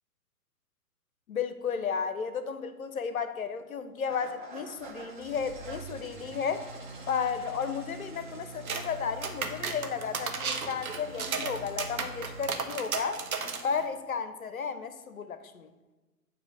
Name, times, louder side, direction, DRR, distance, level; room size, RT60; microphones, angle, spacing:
voice 1, 1.3-6.7 7.1-13.2 13.6-15.7, left 6 dB, 60° left, 11 dB, 0.6 m, -33 dB
Engine starting / Idling, 4.1-12.5, right 2 dB, 35° right, 0.5 m, -45 dB
sound 1, 8.7-8.9 9.2-13.8, right 5 dB, 60° right, 0.8 m, -34 dB
7.3 x 2.8 x 5.9 m, 1.2 s
figure-of-eight pair, 125°, 47 cm